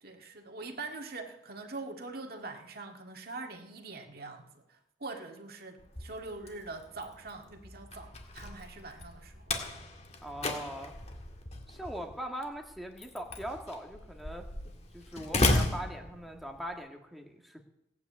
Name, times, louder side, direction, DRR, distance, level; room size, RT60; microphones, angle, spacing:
voice 1, 0.0-9.5, right 3 dB, 55° right, 3 dB, 2.0 m, -43 dB
Slam, 5.8-16.7, left 2 dB, 35° left, 2.1 m, -35 dB
voice 2, 10.2-10.9 11.7-14.5 14.9-17.6, right 1 dB, ahead, 1 dB, 1.6 m, -40 dB
17.5 x 9.5 x 8.3 m, 0.87 s
head